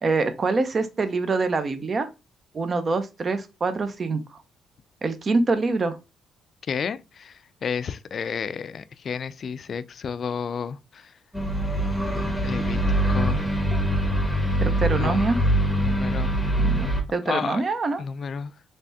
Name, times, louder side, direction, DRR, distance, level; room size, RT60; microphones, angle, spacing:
voice 1, 0.0-2.1 2.5-4.2 5.0-6.0 14.6-15.4 16.6-18.0, right 3 dB, 40° right, 0.6 m, -25 dB
voice 2, 6.7-11.1 12.4-13.5 14.9-15.3 15.8-16.3 16.6-16.8 17.3-17.6 18.0-18.5, left 6 dB, 50° left, 0.3 m, -31 dB
sound 1, 11.3-17.0, right 1 dB, ahead, 1.0 m, -23 dB
3.4 x 3.2 x 2.7 m
cardioid pair, 90°, 0 cm